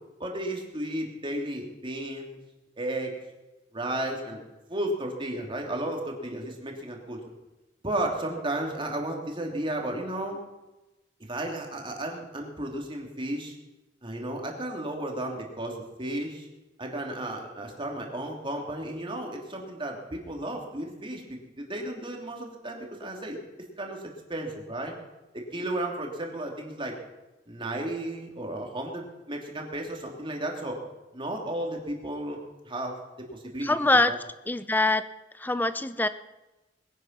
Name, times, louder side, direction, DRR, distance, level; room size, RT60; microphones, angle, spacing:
voice 1, 0.2-2.4 2.8-3.1 3.7-4.4 4.7-7.2 7.8-10.4 11.2-13.5 14.0-16.5 16.8-23.4 23.8-24.9 25.3-26.9 27.5-30.8 31.1-32.4 32.6-33.8 34.1-34.2, right 1 dB, 30° right, 1 dB, 2.8 m, -33 dB
voice 2, 33.6-34.1 34.5-35.0 35.4-36.1, left 2 dB, 10° left, 12 dB, 0.5 m, -23 dB
21.0 x 10.0 x 6.0 m, 1.1 s
head